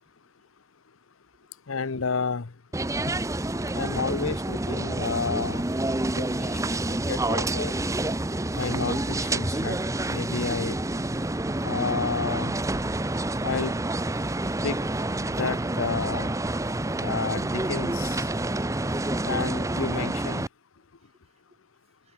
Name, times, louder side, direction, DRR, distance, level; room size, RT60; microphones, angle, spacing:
voice 1, 1.7-2.5 3.7-5.6 6.2-6.6 6.9-7.7 8.5-9.8 10.1-10.8 11.6-12.6 13.4-13.7 14.6-14.8 15.2-16.3 17.0-18.2 19.2-20.4, left 4 dB, 85° left, 0.9 m, -31 dB
sound 1, 2.7-20.5, right 2 dB, 15° right, 0.8 m, -28 dB
voice 2, 2.9-3.3 8.1-8.3 13.1-13.3 14.3-14.6 17.7-19.3, right 3 dB, 30° right, 5.7 m, -58 dB
head